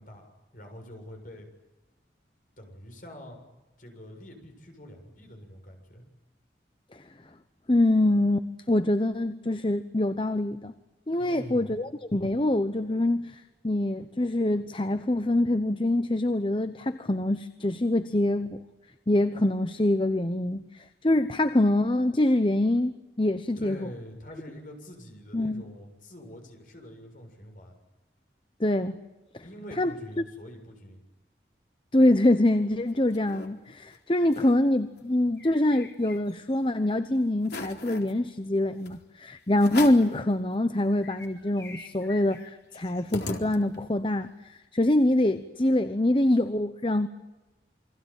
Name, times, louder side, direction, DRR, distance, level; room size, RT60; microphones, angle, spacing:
voice 1, 0.0-1.5 2.6-3.4 3.8-6.0 11.2-11.8 23.6-27.8 29.4-31.0, equal, 50° left, 4 dB, 7.1 m, -45 dB
voice 2, 7.7-10.7 11.1-18.6 19.1-23.9 25.3-25.6 28.6-29.0 29.3-29.4 29.8-29.9 31.9-47.1, left 1 dB, 30° left, 10 dB, 0.9 m, -25 dB
sound 1, 32.6-33.5 33.9-34.0 34.2-34.6 35.0-36.6 37.0-37.1 37.4-38.1 38.8-39.0 39.6-40.2 40.6-40.7 40.9-44.0, left 3 dB, 75° left, 3.9 m, -40 dB
29.0 x 22.5 x 9.0 m, 1.1 s
head